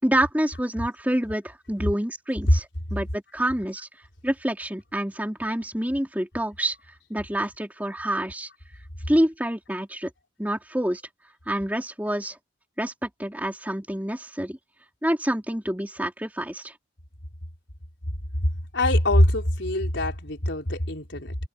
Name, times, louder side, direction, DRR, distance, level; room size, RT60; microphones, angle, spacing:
voice 1, 0.0-3.9 4.2-6.8 7.1-8.5 9.1-10.1 10.4-11.0 11.5-12.4 12.8-14.6 15.0-16.7, right 1 dB, 10° right, 3.6 m, -27 dB
voice 2, 18.7-21.4, left 1 dB, 70° left, 4.4 m, -23 dB
head